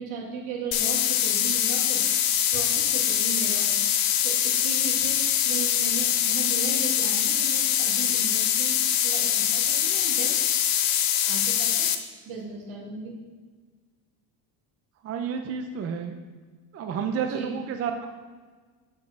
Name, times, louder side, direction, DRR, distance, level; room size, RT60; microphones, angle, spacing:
voice 1, 0.0-3.8 4.2-10.4 11.3-13.2 17.2-17.5, right 4 dB, 85° right, -2 dB, 2.4 m, -37 dB
sound 1, 0.7-12.0, left 10 dB, 60° left, 0.8 m, -24 dB
voice 2, 15.0-16.1 16.7-18.1, right 6 dB, 30° right, 5 dB, 0.6 m, -30 dB
7.0 x 5.2 x 5.9 m, 1.4 s
cardioid pair, 150°, 50 cm